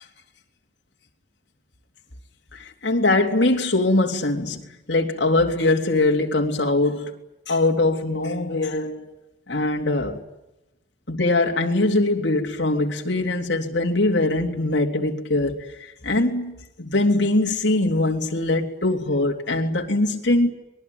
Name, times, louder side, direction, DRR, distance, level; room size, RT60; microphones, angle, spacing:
voice 1, 2.5-7.1 7.5-9.1 9.5-10.2 11.1-20.5, left 2 dB, 70° left, 3.5 m, -22 dB
25.5 x 21.5 x 9.6 m
head